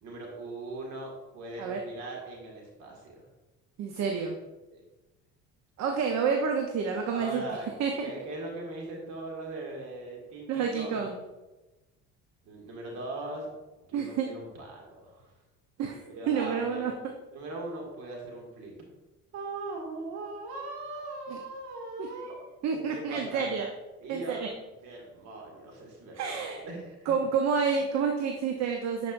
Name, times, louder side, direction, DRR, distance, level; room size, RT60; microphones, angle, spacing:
voice 1, 0.0-3.3 4.7-4.8 7.1-7.7 8.0-11.1 12.4-13.5 13.9-15.3 16.1-16.9 17.3-18.7 19.3-22.5 22.7-23.5 24.0-24.5 24.8-27.2, right 2 dB, 75° right, -1 dB, 2.2 m, -40 dB
voice 2, 3.8-4.4 5.8-7.4 7.8-7.9 10.5-11.2 13.9-14.3 15.8-16.9 21.3-21.4 22.0-22.1 22.6-23.7 24.1-24.5 26.2-26.6 27.1-29.1, right 6 dB, 60° right, 3 dB, 0.8 m, -29 dB
10.0 x 5.2 x 2.6 m, 1.1 s
supercardioid pair, 80°, 30 cm